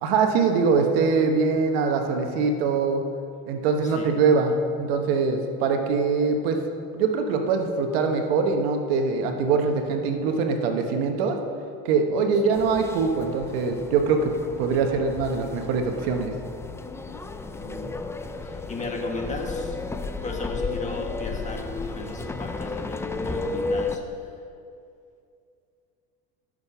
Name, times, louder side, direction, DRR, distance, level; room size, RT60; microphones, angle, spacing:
voice 1, 0.0-3.0 3.5-6.6 6.9-11.4 11.8-14.3 14.6-16.3, right 4 dB, 85° right, 5 dB, 1.3 m, -23 dB
sound 1, 12.5-24.0, left 3 dB, 10° left, 0.5 m, -33 dB
voice 2, 17.5-17.9 18.4-19.8 20.2-24.3, left 2 dB, 25° left, 1 dB, 1.9 m, -36 dB
13.5 x 6.8 x 5.7 m, 2.4 s
supercardioid pair, 115°, 29 cm